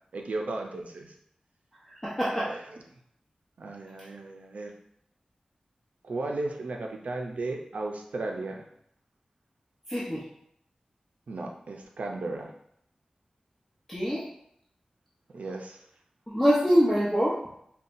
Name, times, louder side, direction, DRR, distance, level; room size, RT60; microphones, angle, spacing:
voice 1, 0.1-1.1 2.4-2.6 3.6-4.7 6.0-8.7 11.3-12.5 15.3-15.8, right 2 dB, 85° right, 2 dB, 0.5 m, -35 dB
voice 2, 2.0-2.5 9.9-10.2 13.9-14.2 16.3-17.4, equal, 15° left, -7 dB, 0.9 m, -24 dB
5.4 x 2.2 x 2.6 m, 0.72 s
wide cardioid pair, 60°, 2 cm